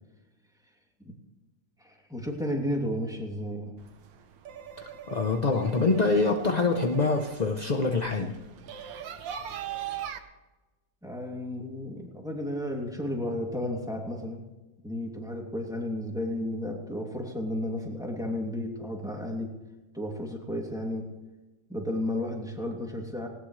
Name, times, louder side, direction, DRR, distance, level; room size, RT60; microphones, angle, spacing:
voice 1, 1.8-3.7 9.0-9.1 11.0-14.4 14.8-19.5 19.9-21.1 21.7-23.3, left 1 dB, ahead, 0 dB, 2.6 m, -33 dB
sound 1, 3.8-10.2, right 9 dB, 90° right, 1.7 m, -41 dB
voice 2, 5.1-8.4, left 3 dB, 35° left, 4 dB, 0.7 m, -25 dB
19.5 x 18.0 x 3.3 m, 1.1 s
omnidirectional pair, 2.0 m